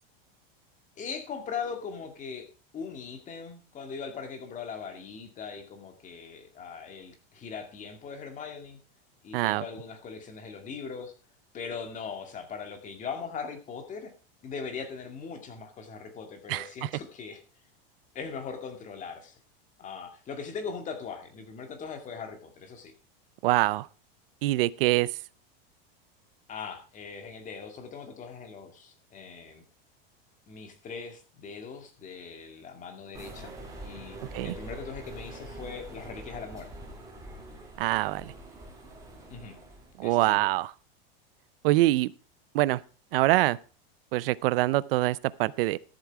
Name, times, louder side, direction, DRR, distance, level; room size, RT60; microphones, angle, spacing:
voice 1, 1.0-2.5 2.7-8.8 9.2-11.1 11.5-14.1 14.4-17.4 18.1-19.4 19.8-22.9 26.5-29.6 30.5-33.5 33.8-36.7 39.3-39.6 40.0-40.5, left 5 dB, 25° left, 2.3 m, -40 dB
voice 2, 9.3-9.6 16.5-16.9 23.4-23.9 24.4-25.1 34.3-34.5 37.8-38.3 40.0-40.7 41.6-42.1 42.5-42.8 43.1-43.6 44.1-45.8, right 18 dB, 70° right, 0.6 m, -24 dB
sound 1, 33.1-40.1, right 1 dB, 10° right, 3.6 m, -44 dB
13.5 x 7.8 x 4.7 m
supercardioid pair, 145°, 29 cm